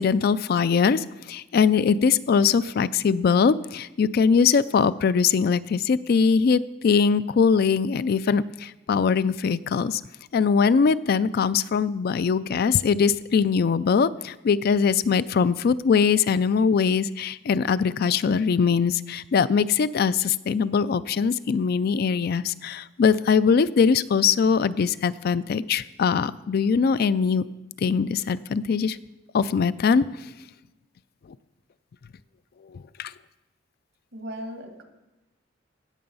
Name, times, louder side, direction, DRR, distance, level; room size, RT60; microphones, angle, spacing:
voice 1, 0.0-10.0 10.3-27.4 27.8-29.0 29.3-30.0 32.7-33.1, left 6 dB, 55° left, 16 dB, 0.3 m, -22 dB
voice 2, 34.1-34.8, equal, 80° right, 4 dB, 1.9 m, -37 dB
16.5 x 6.9 x 5.5 m, 1.0 s
head